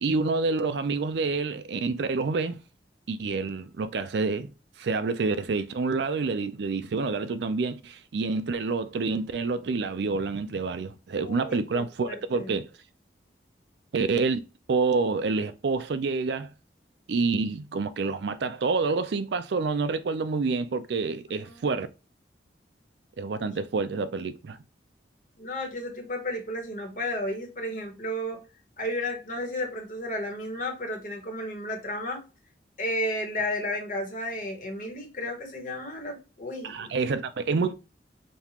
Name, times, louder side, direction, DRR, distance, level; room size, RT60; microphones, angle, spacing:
voice 1, 0.0-2.6 3.1-4.5 4.8-12.7 13.9-14.4 14.7-16.5 17.1-21.9 23.2-24.6 36.6-37.7, right 4 dB, 70° right, 0.4 m, -28 dB
voice 2, 11.2-12.6 21.4-21.7 23.4-23.5 25.4-28.4 28.8-32.2 32.8-36.9, left 1 dB, 45° left, 1.2 m, -33 dB
5.3 x 2.4 x 2.9 m
head